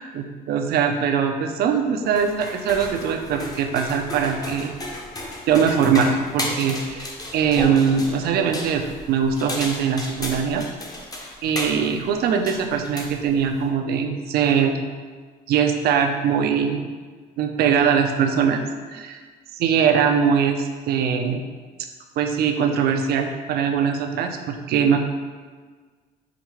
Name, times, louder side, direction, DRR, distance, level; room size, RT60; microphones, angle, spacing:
voice 1, 0.2-4.7 5.5-7.1 7.3-10.6 11.4-14.8 15.5-16.9 17.4-18.6 18.9-19.2 19.5-21.4 22.2-25.0, right 7 dB, 65° right, 5 dB, 0.5 m, -21 dB
sound 1, 2.0-13.7, left 1 dB, 20° left, 0.7 m, -34 dB
5.0 x 3.2 x 3.1 m, 1.5 s
cardioid pair, 110°, 17 cm